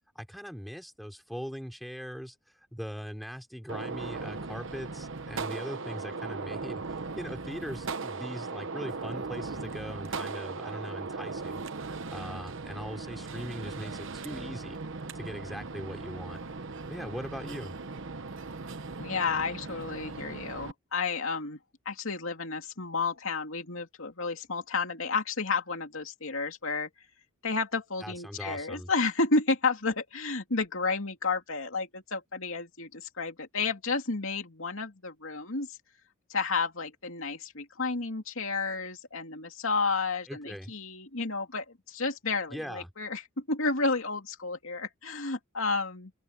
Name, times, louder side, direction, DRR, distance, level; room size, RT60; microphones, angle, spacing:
voice 1, 0.1-2.3 2.7-11.6 12.1-14.8 15.1-16.4 16.9-17.8 28.0-28.9 40.3-40.7 42.5-42.9, equal, ahead, 3.2 m, -40 dB
Gunshot gunfire, 3.7-20.7, right 4 dB, 60° right, 1.1 m, -38 dB
voice 2, 19.0-21.6 21.8-26.9 27.4-35.8 36.3-46.1, left 4 dB, 65° left, 2.7 m, -31 dB
open air
head